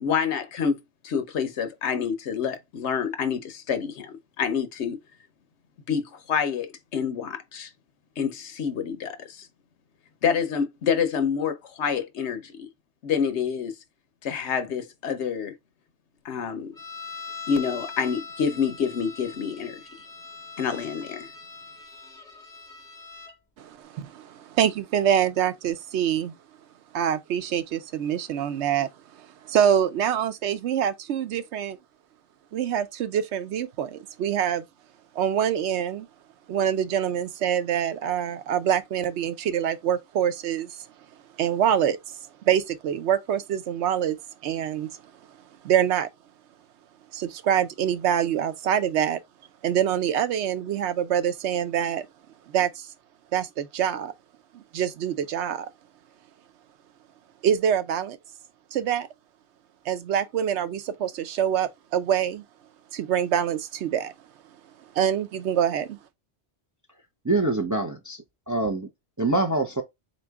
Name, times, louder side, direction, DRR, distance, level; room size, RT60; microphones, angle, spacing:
voice 1, 0.0-0.8 1.0-5.0 5.9-7.7 8.2-9.5 10.2-12.7 13.0-13.7 14.2-15.5 16.2-16.7 17.5-19.8 20.6-21.3, left 6 dB, 75° left, 1.1 m, -27 dB
sound 1, 16.8-23.4, left 5 dB, 5° left, 1.4 m, -41 dB
voice 2, 23.6-26.3 26.9-28.9 29.5-31.8 32.5-34.6 35.2-36.1 36.5-40.8 41.4-42.0 42.5-44.2 44.4-44.9 45.6-46.1 47.1-49.2 49.6-52.1 52.5-52.9 53.3-54.1 54.5-55.7 57.4-58.2 58.7-59.1 59.9-62.4 62.9-64.1 65.0-66.0, right 9 dB, 80° right, 0.9 m, -25 dB
voice 3, 67.2-68.9 69.2-69.8, right 2 dB, 30° right, 0.3 m, -25 dB
4.0 x 3.0 x 3.4 m
omnidirectional pair, 1.2 m